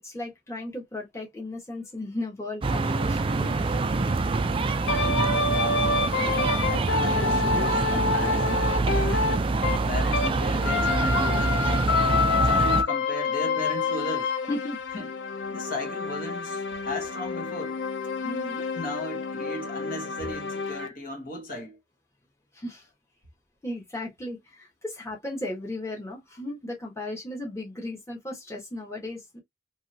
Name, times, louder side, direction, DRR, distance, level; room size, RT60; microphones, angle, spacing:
voice 1, 0.0-3.9 8.9-9.2 14.5-14.8 18.2-18.6 22.5-22.9 23.6-29.4, left 1 dB, 15° left, 1.2 m, -36 dB
sound 1, 2.6-12.8, right 3 dB, 30° right, 0.4 m, -25 dB
sound 2, 4.9-10.4 10.6-20.9, left 4 dB, 65° left, 0.6 m, -28 dB
voice 2, 5.5-5.9 6.7-8.6 9.9-11.6 12.2-14.3 14.9-15.1 15.5-17.8 18.6-21.8, left 2 dB, 50° left, 1.2 m, -36 dB
3.0 x 2.7 x 2.7 m
head